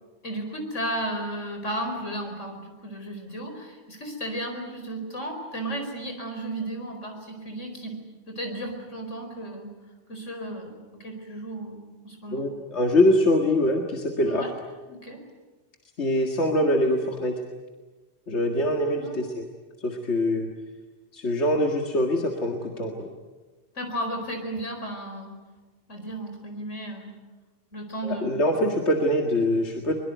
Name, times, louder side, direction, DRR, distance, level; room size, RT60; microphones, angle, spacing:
voice 1, 0.2-8.0 8.3-9.7 10.1-12.4 14.3-14.5 14.9-15.2 19.0-19.2 23.8-25.4 25.9-27.1 27.7-28.4, right 1 dB, 90° left, 4 dB, 5.1 m, -34 dB
voice 2, 12.3-14.5 16.0-17.4 18.3-19.4 19.8-20.5 21.1-23.1 28.0-30.0, left 1 dB, 70° left, 2 dB, 2.2 m, -24 dB
23.5 x 22.5 x 9.3 m, 1.3 s
omnidirectional pair, 1.2 m